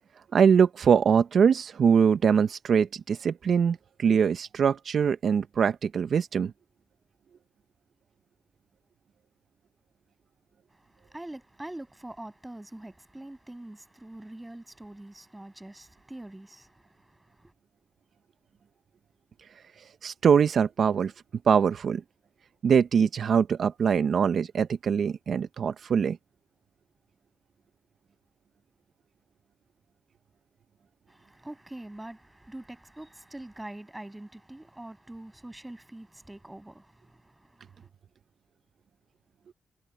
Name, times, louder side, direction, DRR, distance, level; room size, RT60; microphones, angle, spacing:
voice 1, 0.3-6.5 20.0-21.1 21.5-22.0 22.6-26.2, right 7 dB, 70° right, 0.8 m, -23 dB
voice 2, 10.7-17.5 31.1-37.9, right 1 dB, 15° right, 7.6 m, -44 dB
supercardioid pair, 50°, 0 cm